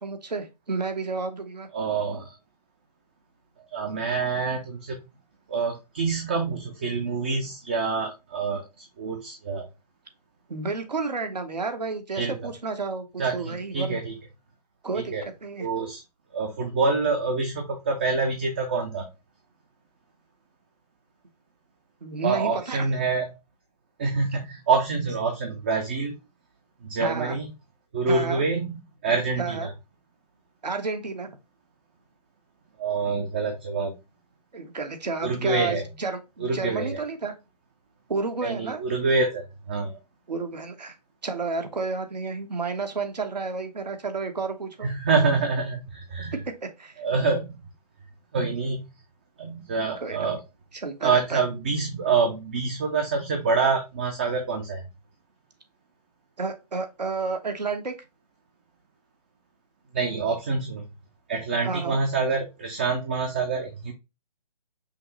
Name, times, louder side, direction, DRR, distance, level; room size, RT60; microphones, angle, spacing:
voice 1, 0.0-1.7 10.5-14.0 14.8-15.7 22.0-22.9 27.0-27.4 28.1-28.4 29.4-29.7 30.6-31.3 34.5-37.3 38.1-38.8 40.3-40.9 41.2-44.9 46.3-47.0 50.0-50.3 50.7-51.4 56.4-57.9 61.6-62.0, right 4 dB, 90° right, 6 dB, 1.1 m, -31 dB
voice 2, 1.7-2.3 3.7-5.0 5.5-9.7 12.2-12.5 13.2-14.1 14.9-15.2 15.6-16.0 16.3-19.1 22.2-23.3 24.0-26.1 26.8-27.4 27.9-29.7 32.8-33.9 35.2-35.8 36.4-37.0 38.4-40.0 44.8-46.3 47.0-47.6 48.3-48.9 49.4-50.4 51.0-54.8 59.9-60.8 61.3-63.9, right 4 dB, 15° right, 3 dB, 0.3 m, -26 dB
5.7 x 2.1 x 3.8 m, 0.25 s
hypercardioid pair, 150°, 21 cm